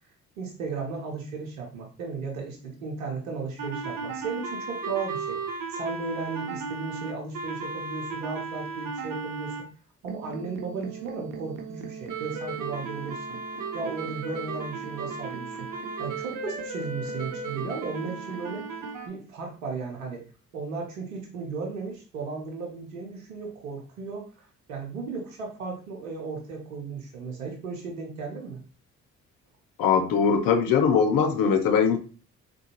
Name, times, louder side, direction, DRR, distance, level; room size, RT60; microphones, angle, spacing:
voice 1, 0.4-5.4 5.7-9.7 10.0-13.4 13.7-18.6 19.1-20.2 20.5-28.6, right 4 dB, 85° right, 0 dB, 0.8 m, -35 dB
sound 1, 3.6-9.6 10.1-19.1, right 4 dB, 55° right, 0.8 m, -35 dB
voice 2, 29.8-32.0, left 6 dB, 55° left, 6 dB, 0.7 m, -21 dB
3.7 x 2.2 x 2.9 m, 0.38 s
hypercardioid pair, 45°, 40 cm